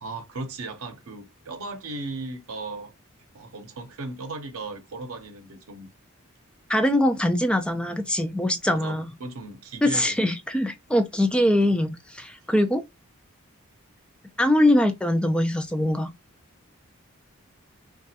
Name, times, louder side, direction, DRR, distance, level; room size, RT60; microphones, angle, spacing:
voice 1, 0.0-2.9 3.3-5.9 8.7-10.2, right 3 dB, 85° right, 0.6 m, -36 dB
voice 2, 6.7-9.1 9.8-12.8 14.4-16.1, left 1 dB, 5° left, 0.3 m, -22 dB
3.1 x 2.3 x 2.7 m
head